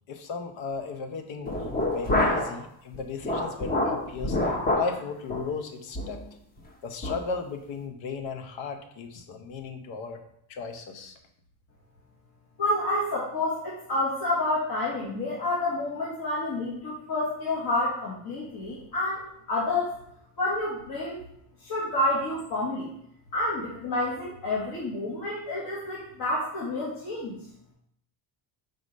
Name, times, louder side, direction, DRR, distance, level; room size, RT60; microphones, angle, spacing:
voice 1, 0.1-1.5 1.9-4.4 4.7-6.2 6.8-10.2 10.5-11.1, left 5 dB, 75° left, 5 dB, 1.1 m, -35 dB
sound 1, 1.5-2.6 2.9-5.0 5.3-5.5 5.9-6.2 6.6-6.7 7.0-7.2, left 1 dB, 20° left, 0.7 m, -27 dB
voice 2, 12.6-20.0 20.4-21.2 21.6-22.9 23.3-27.3, left 2 dB, 50° left, -6 dB, 1.5 m, -29 dB
5.0 x 4.0 x 5.2 m, 0.72 s
cardioid pair, 170°, 47 cm